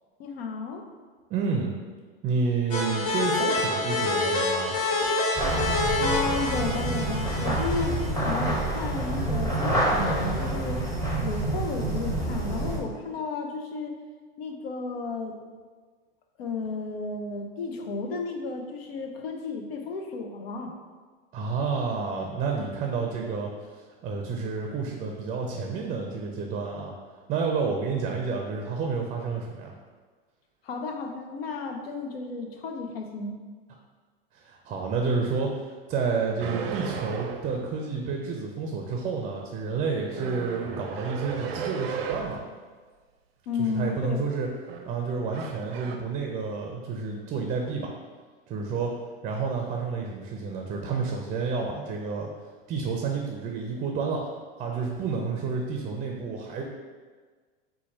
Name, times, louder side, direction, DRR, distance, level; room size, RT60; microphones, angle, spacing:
voice 1, 0.2-0.9 6.0-10.8 11.2-14.0 14.4-15.4 16.4-20.7 30.6-33.4 43.5-44.2, left 4 dB, 85° left, 4 dB, 0.7 m, -33 dB
voice 2, 1.3-1.7 2.2-4.7 21.3-23.5 24.0-26.9 27.3-29.7 34.3-42.4 43.6-44.5 44.8-47.9 48.5-48.9 49.2-52.3 52.7-54.3 54.6-56.6, right 4 dB, 25° right, 1 dB, 0.5 m, -30 dB
sound 1, 2.7-8.1, left 2 dB, 55° left, 1.2 m, -27 dB
sound 2, 5.4-12.8, right 1 dB, 10° left, 0.9 m, -27 dB
sound 3, 36.4-37.7 40.1-42.5 44.5-44.9 45.3-46.0, right 6 dB, 85° right, 0.5 m, -35 dB
4.4 x 2.3 x 4.2 m, 1.5 s
hypercardioid pair, 115°, 29 cm